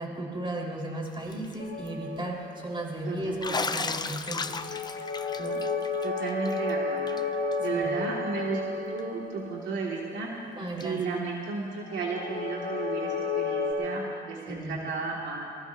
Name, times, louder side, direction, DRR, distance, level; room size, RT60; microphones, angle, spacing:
voice 1, 0.0-4.7 5.4-5.6 7.7-7.9 10.6-11.0 14.5-14.8, right 1 dB, 25° right, -2 dB, 4.4 m, -35 dB
Bathtub (filling or washing), 1.1-1.5 1.9-2.0 3.4-6.7 7.1-7.2 7.5-7.6 9.0-9.1 10.8-10.9, left 4 dB, 20° left, 0.6 m, -34 dB
sound 1, 1.6-3.3 4.3-10.3 11.8-13.7, left 3 dB, 65° left, 3.0 m, -32 dB
voice 2, 3.1-3.7 6.0-7.2 7.6-10.3 10.8-15.4, right 4 dB, 75° right, -3 dB, 2.2 m, -34 dB
23.0 x 20.0 x 2.7 m, 2.3 s
cardioid pair, 90°, 20 cm